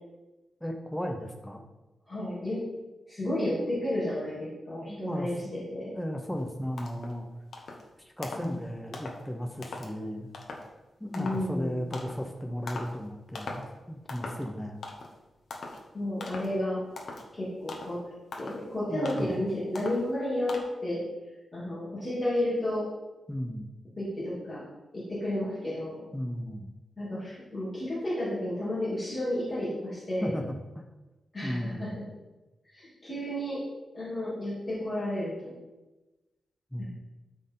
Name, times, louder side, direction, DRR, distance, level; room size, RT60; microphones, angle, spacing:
voice 1, 0.6-1.6 4.9-5.5 5.9-7.3 8.0-10.3 11.0-14.8 18.9-19.3 23.3-23.7 26.1-26.7 30.2-30.9 31.4-31.9 36.7-36.8, equal, 5° left, 2 dB, 0.7 m, -35 dB
voice 2, 2.1-2.6 3.1-6.0 8.3-8.6 11.2-11.9 15.9-16.8 17.3-18.0 18.4-21.0 21.5-22.9 24.0-24.6 24.9-26.0 27.0-30.3 31.3-32.0 32.6-33.6 33.9-35.5 36.8-36.9, left 1 dB, 25° left, -10 dB, 2.7 m, -32 dB
sound 1, 6.4-6.5 6.8-7.2 7.5-7.9 8.2-8.6 8.9-9.2 9.6-9.9 10.3-10.7 11.1-11.5 11.9-12.2 12.7-13.0 13.3-13.7 14.1-14.5 14.8-15.2 15.5-15.8 16.2-16.5 17.0-17.3 17.7-18.0 18.3-18.7 19.1-19.4 19.7-20.1 20.5-20.6, left 3 dB, 60° left, 1.2 m, -40 dB
13.0 x 4.4 x 3.8 m, 1.1 s
wide cardioid pair, 150°, 0 cm